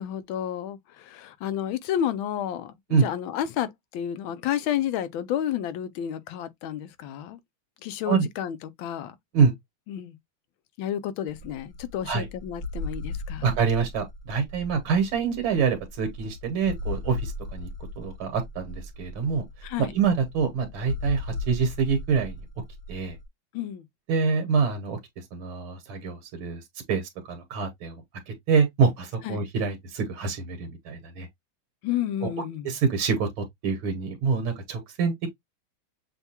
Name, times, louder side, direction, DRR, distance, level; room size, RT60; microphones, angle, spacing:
voice 1, 0.0-2.7 3.0-7.4 7.8-9.1 9.9-10.2 10.8-13.5 19.6-20.0 23.5-23.8 29.2-29.4 31.8-32.7, left 10 dB, 80° left, 1.4 m, -31 dB
sound 1, 11.3-23.2, left 2 dB, 40° left, 1.0 m, -37 dB
voice 2, 13.4-17.7 18.0-19.4 19.8-22.3 22.9-23.2 24.1-26.6 26.9-27.9 28.3-31.3 32.2-32.3 32.6-35.3, right 5 dB, 80° right, 1.9 m, -26 dB
6.8 x 2.3 x 2.8 m
omnidirectional pair, 2.2 m